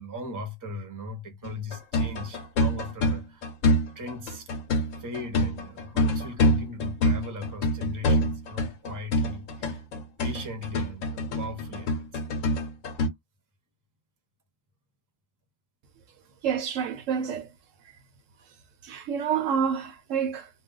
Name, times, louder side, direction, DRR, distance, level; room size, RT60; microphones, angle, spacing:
voice 1, 0.0-4.5 5.0-12.3, left 2 dB, 20° right, 0.7 m, -38 dB
sound 1, 1.4-13.1, left 1 dB, 75° left, 1.1 m, -26 dB
voice 2, 16.4-17.5 18.8-20.5, right 7 dB, 75° right, 0.9 m, -28 dB
2.4 x 2.3 x 3.7 m
omnidirectional pair, 1.4 m